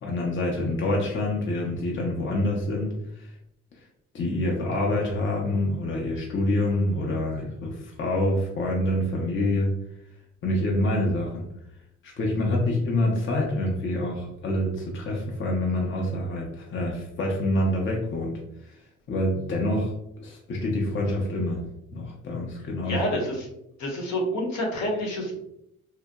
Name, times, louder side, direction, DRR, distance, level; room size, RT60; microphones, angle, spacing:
voice 1, 0.0-3.3 4.1-9.7 10.4-11.4 12.0-18.4 19.1-19.9 20.2-21.6 21.9-23.1, left 1 dB, 40° left, -1 dB, 0.5 m, -26 dB
voice 2, 22.8-23.5 23.8-25.4, left 1 dB, 70° left, 0 dB, 0.8 m, -28 dB
2.7 x 2.1 x 2.2 m, 0.81 s
cardioid pair, 90°, 30 cm